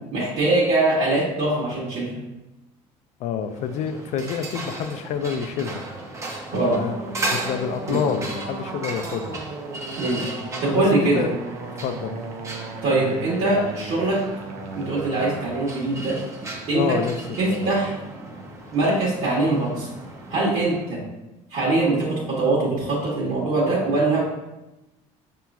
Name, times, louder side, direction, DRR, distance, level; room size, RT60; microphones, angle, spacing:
voice 1, 0.1-2.1 6.5-6.8 7.9-8.0 10.0-10.2 10.6-11.3 12.8-14.2 14.7-16.2 16.7-17.0 17.4-17.9 18.7-19.9 20.3-21.0 21.5-24.2, right 2 dB, 65° right, -7 dB, 1.3 m, -22 dB
voice 2, 3.2-5.8 6.7-7.0 7.3-9.4 10.7-11.3 11.8-12.2 16.7-17.2 17.5-17.7, left 7 dB, 60° left, 8 dB, 0.4 m, -27 dB
sound 1, 3.5-20.9, right 2 dB, 20° right, 0.6 m, -36 dB
sound 2, 6.6-15.5, right 3 dB, 80° right, 0.6 m, -36 dB
5.7 x 2.9 x 2.3 m, 0.98 s
cardioid pair, 120°, 14 cm